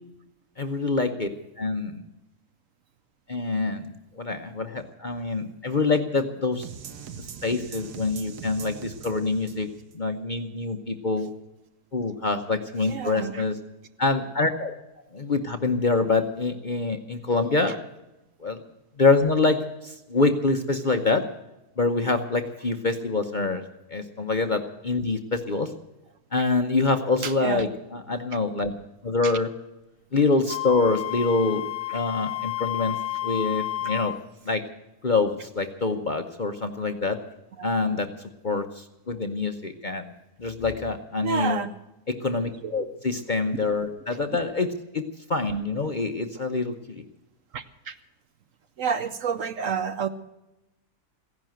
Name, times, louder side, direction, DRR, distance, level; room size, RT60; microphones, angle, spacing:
voice 1, 0.6-1.3 1.6-2.0 3.3-6.7 7.4-9.7 9.9-11.3 11.9-13.6 14.0-14.7 15.1-17.8 18.4-18.6 19.0-21.2 21.8-23.6 23.9-25.7 26.3-28.7 29.0-29.5 30.1-31.6 31.9-34.1 34.5-34.6 35.0-37.2 37.6-38.1 38.4-40.1 40.4-41.6 42.1-45.0 45.3-47.0, left 3 dB, 35° left, 6 dB, 0.8 m, -25 dB
sound 1, 6.6-9.9, right 7 dB, 80° right, 1.6 m, -41 dB
voice 2, 12.8-13.4 23.5-23.6 27.2-27.6 29.2-29.3 37.6-37.7 41.2-41.7 42.6-42.8 47.5-48.0 48.8-50.1, right 6 dB, 60° right, 11 dB, 1.0 m, -29 dB
Wind instrument woodwind instrument, 30.5-34.2, left 14 dB, 85° left, 1.6 m, -31 dB
16.0 x 11.0 x 7.6 m, 0.95 s
omnidirectional pair, 1.7 m